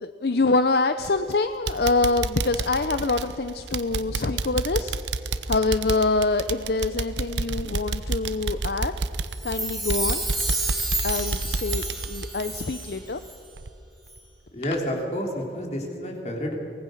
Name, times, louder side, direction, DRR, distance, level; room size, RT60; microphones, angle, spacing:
voice 1, 0.0-5.0 5.5-8.9 9.4-10.2 11.0-13.2, left 3 dB, 60° left, 10 dB, 0.7 m, -25 dB
sound 1, 1.0-1.3 1.7-13.2 13.6-13.7 14.2-14.3, right 3 dB, 90° right, 0.9 m, -30 dB
Chime, 9.3-13.0 13.2-13.3, right 2 dB, ahead, 4.9 m, -30 dB
voice 2, 14.5-16.6, equal, 40° left, 1 dB, 3.6 m, -29 dB
24.0 x 19.5 x 6.5 m, 2.5 s
head